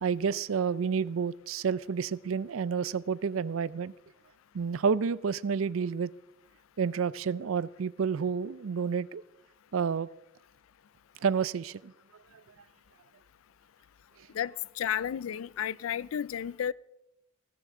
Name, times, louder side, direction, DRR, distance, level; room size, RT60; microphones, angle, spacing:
voice 1, 0.0-3.9 4.5-6.1 6.8-9.2 9.7-10.1 11.2-11.9, right 6 dB, 80° right, 0.4 m, -29 dB
voice 2, 14.3-16.7, left 9 dB, 80° left, 0.4 m, -32 dB
16.0 x 13.5 x 3.7 m
head